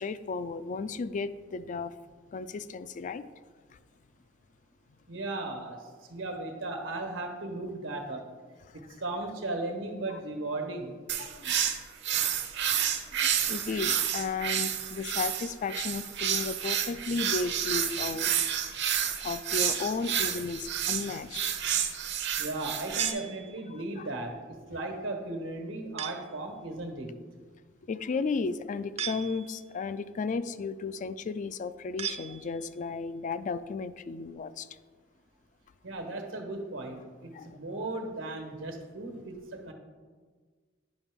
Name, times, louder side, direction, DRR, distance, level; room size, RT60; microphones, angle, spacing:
voice 1, 0.0-1.9 2.3-3.2 3.7-3.8 10.1-10.2 11.2-11.6 12.8-12.9 13.2-18.3 18.6-18.7 19.2-21.6 24.0-24.1 27.9-34.7 37.3-37.6, left 4 dB, 40° left, 0.3 m, -34 dB
voice 2, 5.1-8.3 8.7-11.0 22.4-27.2 35.8-39.7, right 2 dB, 90° right, 1.3 m, -36 dB
sound 1, 11.1-23.1, right 9 dB, 60° right, 0.7 m, -30 dB
sound 2, 23.0-23.9 26.0-26.5 29.0-29.8 32.0-32.9, right 8 dB, 35° right, 0.4 m, -38 dB
9.7 x 5.8 x 3.6 m
head